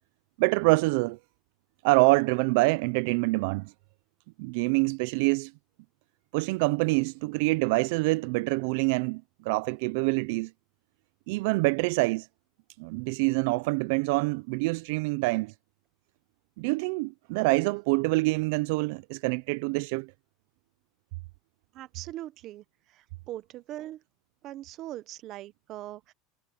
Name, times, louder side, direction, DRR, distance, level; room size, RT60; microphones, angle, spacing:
voice 1, 0.4-1.2 1.8-3.7 4.4-5.5 6.3-10.5 11.3-12.3 12.8-15.5 16.6-20.1, right 25 dB, 65° right, 0.3 m, -26 dB
voice 2, 21.7-24.0 24.4-26.1, right 14 dB, 40° right, 0.9 m, -41 dB
supercardioid pair, 155°, 0 cm